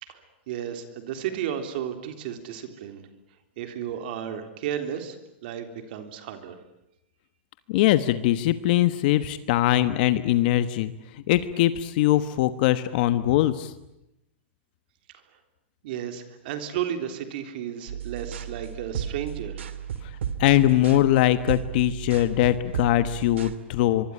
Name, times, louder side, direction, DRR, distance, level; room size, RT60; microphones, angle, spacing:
voice 1, 0.0-3.0 3.6-5.2 5.4-6.6 15.8-19.6, right 9 dB, 55° right, 7 dB, 3.6 m, -33 dB
voice 2, 7.7-13.7 20.4-24.1, left 14 dB, 50° left, 12 dB, 1.2 m, -22 dB
sound 1, 17.9-23.6, right 9 dB, 90° right, 2.6 m, -34 dB
24.5 x 24.0 x 9.9 m, 0.89 s
supercardioid pair, 150°, 6 cm